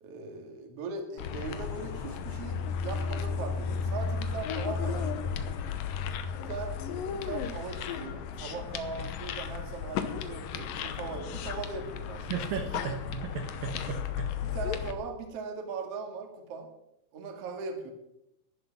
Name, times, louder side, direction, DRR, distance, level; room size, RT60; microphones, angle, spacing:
voice 1, 0.0-5.3 6.3-6.8 7.1-12.7 14.4-16.7 17.1-17.9, right 4 dB, 45° right, 4 dB, 2.1 m, -39 dB
sound 1, 1.2-14.9, left 6 dB, 85° left, 2.0 m, -34 dB
voice 2, 12.3-14.3, right 6 dB, 65° right, 4 dB, 2.3 m, -35 dB
14.0 x 11.0 x 6.0 m, 0.86 s
omnidirectional pair, 5.5 m